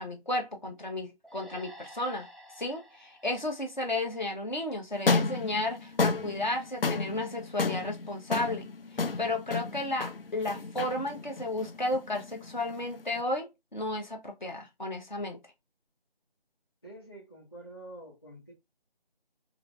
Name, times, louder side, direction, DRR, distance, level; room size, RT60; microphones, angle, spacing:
voice 1, 0.0-2.3 2.6-8.7 9.2-15.4, left 2 dB, 45° left, 0.9 m, -33 dB
sound 1, 1.2-4.7, equal, ahead, 0.3 m, -52 dB
sound 2, 4.9-13.2, left 4 dB, 65° left, 0.5 m, -32 dB
voice 2, 16.8-18.5, right 1 dB, 25° left, 1.0 m, -47 dB
2.9 x 2.6 x 3.1 m
figure-of-eight pair, 170°, 31 cm